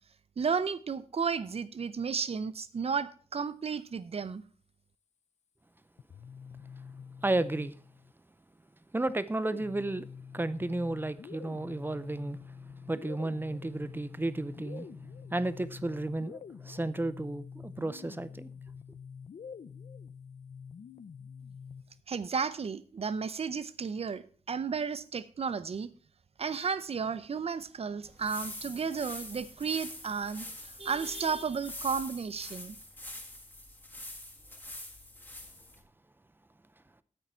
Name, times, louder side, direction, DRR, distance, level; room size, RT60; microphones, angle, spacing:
voice 1, 0.4-4.4 22.1-25.9 26.4-32.8, right 6 dB, 55° right, 0.6 m, -33 dB
sound 1, 6.0-8.1 9.1-22.0, left 6 dB, 70° left, 0.5 m, -47 dB
voice 2, 7.2-7.7 8.9-10.1 10.3-12.4 12.9-18.5, right 2 dB, 15° right, 0.5 m, -33 dB
sweeping the shavings, 28.0-35.8, left 1 dB, 15° left, 1.6 m, -45 dB
9.1 x 8.5 x 4.5 m
wide cardioid pair, 135°, 12 cm